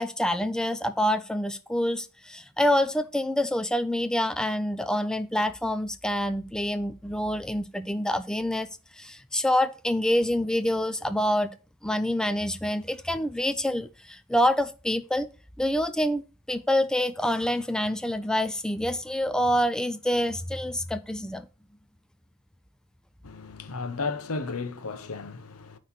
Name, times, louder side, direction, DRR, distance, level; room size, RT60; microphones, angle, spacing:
voice 1, 0.0-8.7 9.0-11.5 11.8-15.3 15.6-21.5, left 1 dB, 5° left, 0.3 m, -26 dB
voice 2, 23.2-25.8, left 4 dB, 80° left, 0.9 m, -34 dB
9.4 x 3.2 x 5.8 m
head